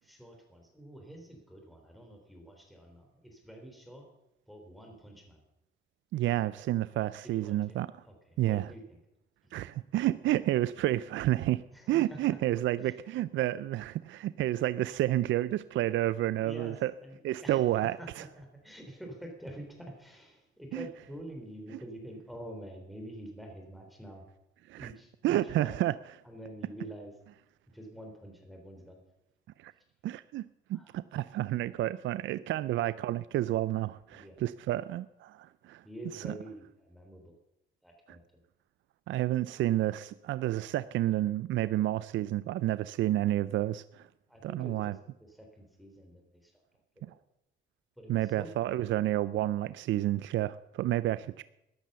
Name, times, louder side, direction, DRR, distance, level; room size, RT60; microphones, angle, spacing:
voice 1, 0.0-4.1 4.5-5.4 7.2-7.8 8.0-9.0 9.4-9.5 11.7-12.4 12.8-13.0 16.4-24.3 24.8-25.8 26.2-27.2 27.7-29.0 30.7-31.0 34.1-34.4 35.8-37.4 37.8-38.2 41.5-41.8 44.3-46.6 47.0-47.2 48.0-48.8, equal, ahead, 2 dB, 3.7 m, -47 dB
voice 2, 6.1-7.9 8.4-8.6 9.5-11.6 11.9-16.9 17.2-18.0 20.7-20.9 24.7-24.9 25.2-25.9 29.6-29.7 30.0-35.8 36.2-36.3 39.1-44.1 44.4-44.9 48.1-51.4, right 14 dB, 75° right, 16 dB, 0.5 m, -30 dB
13.5 x 10.5 x 6.8 m, 0.86 s
cardioid pair, 90°, 20 cm